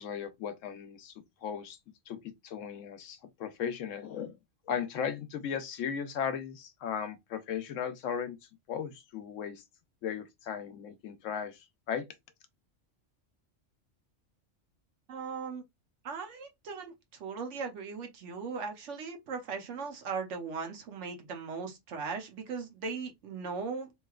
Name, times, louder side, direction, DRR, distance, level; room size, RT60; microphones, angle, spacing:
voice 1, 0.0-1.8 2.1-2.2 2.4-4.4 4.7-8.4 8.7-9.6 10.0-12.1, left 7 dB, 85° left, 1.0 m, -36 dB
voice 2, 15.1-15.6 16.0-23.9, right 5 dB, 75° right, 1.1 m, -38 dB
3.1 x 2.7 x 2.3 m
omnidirectional pair, 1.3 m